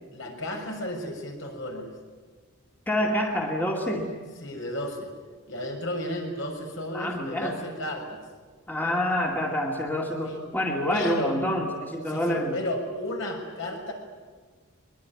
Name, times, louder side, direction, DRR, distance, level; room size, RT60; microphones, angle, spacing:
voice 1, 0.1-1.9 4.4-5.1 5.5-8.2 10.2-10.4 10.9-11.4 12.1-13.9, left 1 dB, 60° left, 2 dB, 6.5 m, -33 dB
voice 2, 2.9-4.1 6.9-7.6 8.7-12.5, left 1 dB, 10° left, 0 dB, 2.2 m, -27 dB
23.0 x 22.0 x 9.6 m, 1.5 s
head